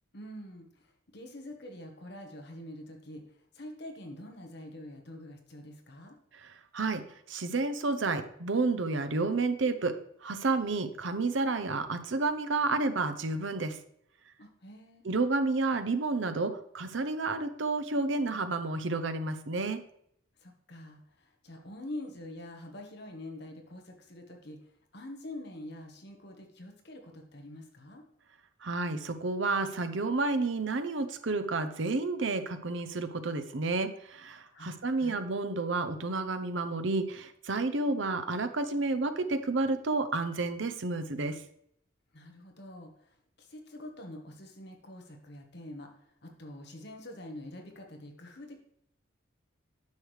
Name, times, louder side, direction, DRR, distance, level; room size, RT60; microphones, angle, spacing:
voice 1, 0.1-6.2 14.4-15.0 20.4-28.0 34.5-35.2 42.1-48.6, left 1 dB, 55° left, 3 dB, 1.3 m, -46 dB
voice 2, 6.3-13.8 15.0-19.8 28.6-41.4, right 3 dB, 65° right, 9 dB, 0.7 m, -30 dB
9.6 x 6.5 x 3.3 m, 0.71 s
head